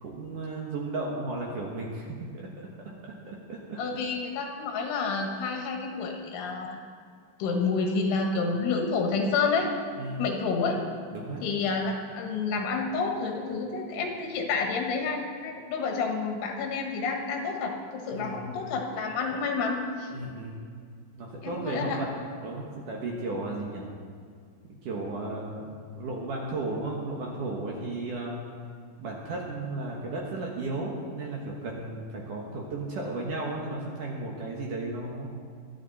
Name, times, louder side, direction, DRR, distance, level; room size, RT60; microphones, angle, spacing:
voice 1, 0.0-3.8 10.0-10.3 11.1-11.4 18.1-18.5 20.1-20.6 21.1-23.9 24.8-28.4 29.0-35.3, right 2 dB, 60° right, -2 dB, 2.3 m, -34 dB
voice 2, 3.8-6.8 7.4-9.7 10.2-10.8 11.4-20.1 21.4-22.0, left 4 dB, 85° left, 2 dB, 4.0 m, -29 dB
24.0 x 10.5 x 4.2 m, 2.1 s
omnidirectional pair, 5.3 m